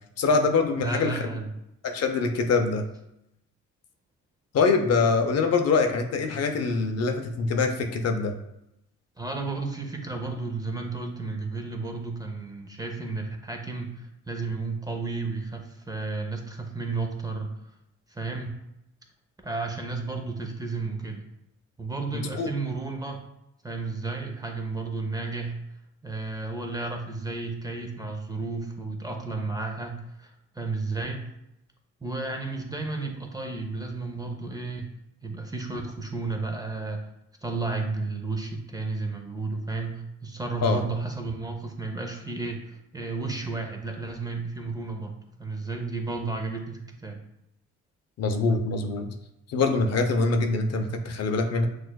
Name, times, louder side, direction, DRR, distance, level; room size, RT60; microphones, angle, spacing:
voice 1, 0.2-1.2 1.8-2.9 4.5-8.3 22.3-22.5 40.6-40.8 48.2-49.1 49.5-51.7, left 4 dB, 55° left, 5 dB, 0.6 m, -24 dB
voice 2, 0.8-1.5 9.2-17.5 18.1-18.5 19.4-21.2 21.8-23.2 23.6-25.6 26.0-31.2 32.0-34.9 35.2-37.0 37.4-47.2, right 3 dB, 15° right, 2 dB, 0.5 m, -32 dB
6.1 x 2.4 x 2.2 m, 0.84 s
cardioid pair, 90°, 30 cm